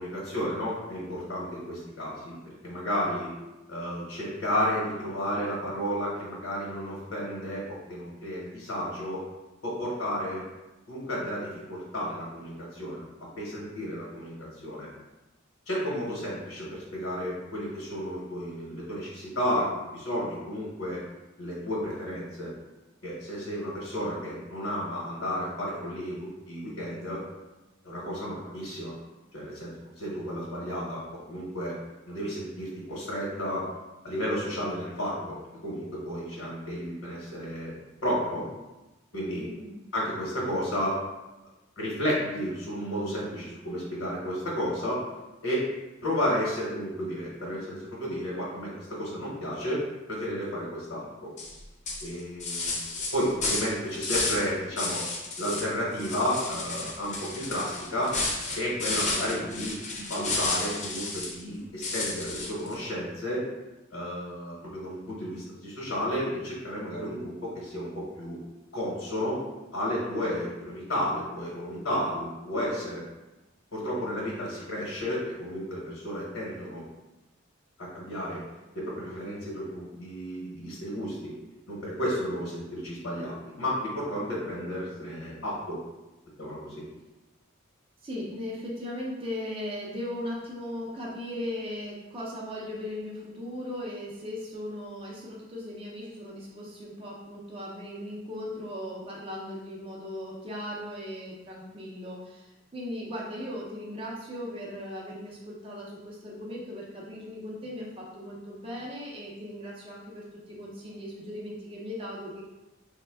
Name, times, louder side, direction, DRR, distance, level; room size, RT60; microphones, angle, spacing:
voice 1, 0.0-2.3 2.6-3.3 3.7-9.2 9.6-10.4 10.9-13.1 13.4-14.9 15.7-21.0 21.4-22.5 23.0-27.2 27.8-28.9 29.3-31.0 31.3-31.8 32.1-33.6 34.0-35.4 35.6-37.7 38.0-38.5 39.1-39.5 39.9-41.0 41.8-45.0 45.4-45.7 46.0-49.8 50.1-51.3 52.0-52.8 53.1-55.0 55.4-58.2 58.5-63.5 63.9-68.4 68.7-69.4 69.7-73.0 73.7-76.8 77.8-78.4 78.7-81.3 81.7-85.8 86.4-86.8, equal, 70° left, -5 dB, 0.9 m, -32 dB
voice 2, 39.4-39.7 86.8-87.0 88.0-112.4, left 1 dB, 25° right, -4 dB, 0.5 m, -38 dB
sound 1, 51.4-51.6 51.9-54.5 54.8-55.7 56.0-61.4 61.8-62.7, left 3 dB, 35° left, 0.6 m, -32 dB
3.3 x 2.1 x 3.4 m, 1.1 s
head